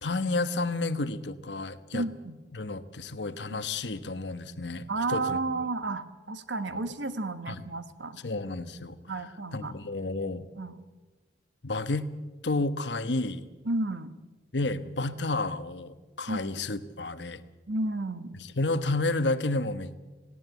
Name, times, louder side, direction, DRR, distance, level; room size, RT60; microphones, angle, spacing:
voice 1, 0.0-2.1 2.5-5.7 6.7-6.8 7.5-7.6 8.2-9.0 9.5-10.5 11.6-12.1 12.4-13.5 14.5-17.4 18.4-19.9, left 2 dB, 70° left, 11 dB, 1.1 m, -31 dB
voice 2, 1.9-2.4 3.5-3.6 4.9-8.2 9.1-9.7 10.6-10.7 13.6-14.1 16.3-16.5 17.7-18.4, right 2 dB, 80° right, 11 dB, 1.3 m, -32 dB
18.5 x 17.5 x 8.2 m, 1.2 s
head